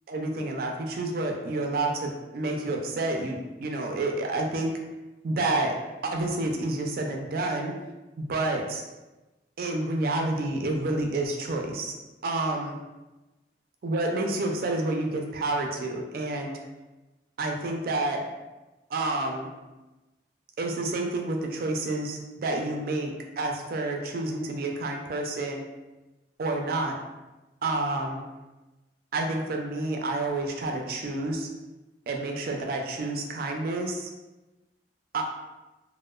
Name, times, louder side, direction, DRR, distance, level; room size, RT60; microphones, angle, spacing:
voice 1, 0.1-4.8 5.2-5.8 6.0-7.7 8.2-8.8 9.6-11.9 12.2-12.8 13.8-16.6 17.4-18.3 18.9-19.5 20.6-25.7 26.4-26.9 27.6-28.2 29.1-31.5 32.1-34.1 35.1-35.2, right 2 dB, 55° right, 2 dB, 0.3 m, -29 dB
2.9 x 2.0 x 2.2 m, 1.1 s
head